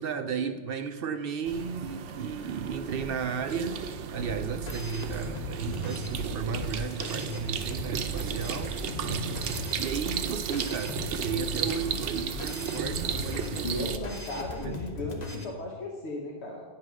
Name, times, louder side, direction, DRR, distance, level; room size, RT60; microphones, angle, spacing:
voice 1, 0.0-3.9 4.1-9.4 9.8-13.8 14.3-14.9, right 6 dB, 65° right, 9 dB, 0.7 m, -34 dB
sound 1, 1.5-14.0, right 7 dB, 90° right, 1.0 m, -34 dB
sound 2, 4.2-15.4, left 2 dB, 40° left, 1.1 m, -38 dB
voice 2, 13.6-16.6, left 1 dB, 70° left, -1 dB, 1.3 m, -35 dB
9.6 x 5.7 x 6.2 m, 1.4 s
omnidirectional pair, 1.2 m